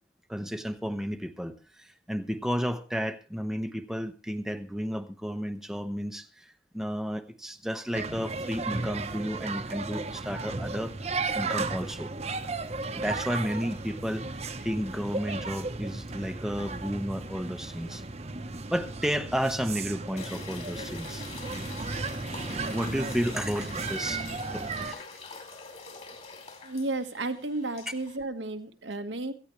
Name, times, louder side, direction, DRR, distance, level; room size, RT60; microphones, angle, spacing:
voice 1, 0.3-12.1 12.8-18.0 18.7-21.2 22.7-24.2 24.5-25.0, equal, 5° right, 7 dB, 0.9 m, -32 dB
sound 1, 7.9-24.9, right 3 dB, 35° right, 1.0 m, -35 dB
sound 2, 20.2-28.2, left 4 dB, 35° left, 3.1 m, -44 dB
voice 2, 26.6-29.3, right 2 dB, 90° right, 6 dB, 1.6 m, -33 dB
17.5 x 14.5 x 3.2 m, 0.35 s
head